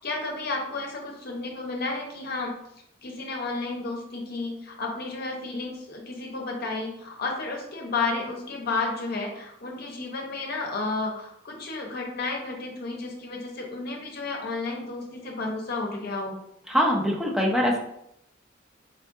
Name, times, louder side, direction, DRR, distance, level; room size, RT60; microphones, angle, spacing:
voice 1, 0.0-2.6 3.0-16.4, left 3 dB, 50° left, 0 dB, 0.7 m, -32 dB
voice 2, 16.7-17.8, equal, ahead, -2 dB, 0.5 m, -23 dB
4.3 x 2.4 x 2.5 m, 0.76 s
head